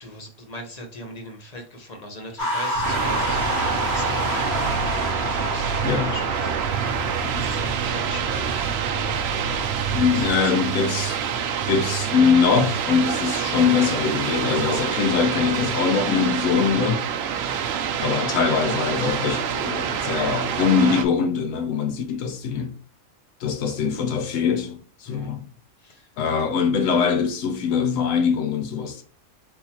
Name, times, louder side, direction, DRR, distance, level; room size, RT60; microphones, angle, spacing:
voice 1, 0.0-3.6 3.9-5.7 6.0-6.6 7.3-8.7 9.2-9.5 9.9-11.0 25.0-25.3 25.8-26.1, left 1 dB, 35° left, 0.8 m, -40 dB
sound 1, 2.4-7.6, left 1 dB, 55° left, 1.7 m, -28 dB
sound 2, 2.7-10.3, right 3 dB, 90° right, 1.0 m, -32 dB
sound 3, 2.8-21.0, right 8 dB, 65° right, 0.7 m, -27 dB
voice 2, 9.9-11.2 11.7-17.0 18.0-22.7 23.4-25.4 26.2-29.0, left 6 dB, 85° left, 1.0 m, -22 dB
4.2 x 3.7 x 2.8 m
omnidirectional pair, 1.3 m